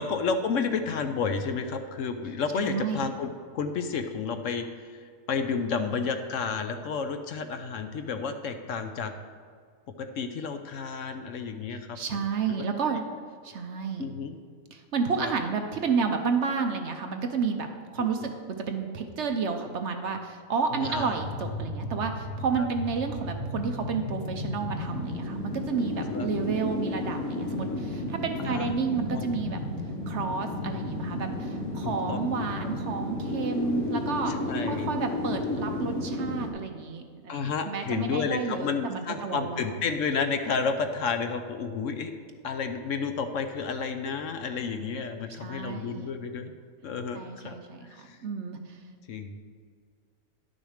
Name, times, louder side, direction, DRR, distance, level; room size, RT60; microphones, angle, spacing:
voice 1, 0.0-9.1 10.0-12.0 12.8-13.0 14.0-14.4 15.2-15.3 18.0-18.3 20.7-21.1 22.6-22.7 26.1-26.3 28.4-28.7 29.1-29.3 31.8-32.2 34.3-34.9 37.3-42.1 42.4-46.5 46.8-47.6 47.9-48.2 49.1-49.4, left 5 dB, 65° left, 7 dB, 0.9 m, -31 dB
voice 2, 2.6-3.1 11.9-13.0 13.4-14.1 14.7-17.7 17.9-29.6 30.1-34.3 34.7-39.8 45.4-46.1 47.1-47.9 48.2-48.8, right 5 dB, 60° right, 5 dB, 0.9 m, -31 dB
sound 1, 20.8-36.5, left 2 dB, 85° left, 1.6 m, -33 dB
11.0 x 6.3 x 5.0 m, 2.1 s
omnidirectional pair, 1.5 m